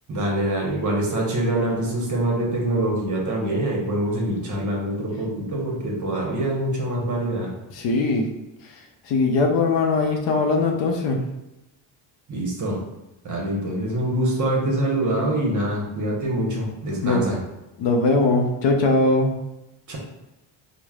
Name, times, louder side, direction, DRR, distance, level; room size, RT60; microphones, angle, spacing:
voice 1, 0.1-7.5 12.3-12.8 13.2-17.4 19.9-20.0, right 1 dB, 40° right, -2 dB, 0.9 m, -25 dB
voice 2, 7.7-8.3 9.1-11.2 17.0-17.2 17.8-19.3, left 3 dB, 65° left, 2 dB, 0.6 m, -20 dB
3.1 x 2.0 x 2.3 m, 0.96 s
cardioid pair, 85°, 49 cm